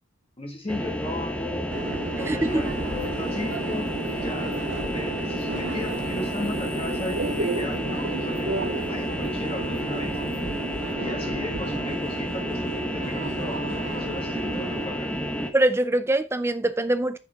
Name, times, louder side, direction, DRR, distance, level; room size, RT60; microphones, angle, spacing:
voice 1, 0.4-1.7 2.2-4.6 4.9-10.2 11.0-15.1, left 2 dB, 25° left, 1.7 m, -36 dB
sound 1, 0.7-15.5, equal, 5° left, 1.1 m, -30 dB
Subway metro underground, 1.7-14.9, right 3 dB, 55° right, 0.6 m, -34 dB
voice 2, 2.3-2.6 15.5-17.2, right 1 dB, 10° right, 0.6 m, -23 dB
sound 2, 2.5-10.9, left 2 dB, 75° left, 1.9 m, -46 dB
8.5 x 6.8 x 3.5 m
head